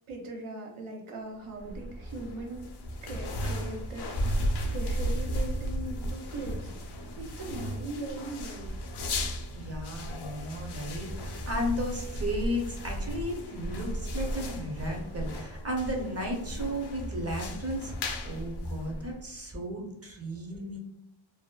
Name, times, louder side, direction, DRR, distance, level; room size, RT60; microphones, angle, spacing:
voice 1, 0.1-2.6 3.0-8.8 20.3-20.4, right 2 dB, 85° right, 1 dB, 0.7 m, -40 dB
sound 1, 1.5-19.4, equal, 55° left, 0.5 m, -35 dB
voice 2, 9.5-20.8, equal, 30° right, 1 dB, 0.6 m, -34 dB
2.7 x 2.1 x 2.2 m, 0.88 s
wide cardioid pair, 85°, 49 cm